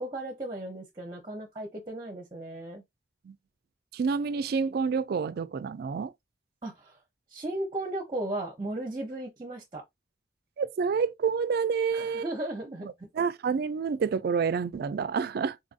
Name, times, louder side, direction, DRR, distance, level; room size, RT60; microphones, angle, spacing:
voice 1, 0.0-2.8 6.6-7.0 7.3-9.8 11.9-13.1, right 1 dB, 25° right, 0.7 m, -36 dB
voice 2, 3.9-6.1 10.6-12.2 12.8-15.6, right 5 dB, 55° right, 0.3 m, -28 dB
4.0 x 2.6 x 2.4 m
head